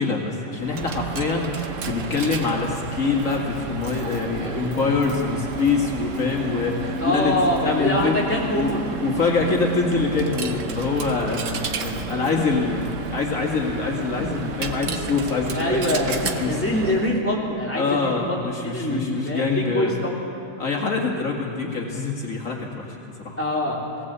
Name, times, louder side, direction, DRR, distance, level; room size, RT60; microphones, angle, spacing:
voice 1, 0.0-7.3 7.6-8.1 8.6-16.6 17.8-19.9 20.6-23.0 23.2-23.4, left 4 dB, 80° left, -1 dB, 2.6 m, -25 dB
Coin (dropping), 0.6-17.2, right 4 dB, 70° right, 1.4 m, -31 dB
voice 2, 7.0-8.8 15.5-16.1 16.4-20.1 23.4-23.8, left 1 dB, 10° left, -4 dB, 3.2 m, -24 dB
19.0 x 18.0 x 8.2 m, 2.7 s
omnidirectional pair, 1.4 m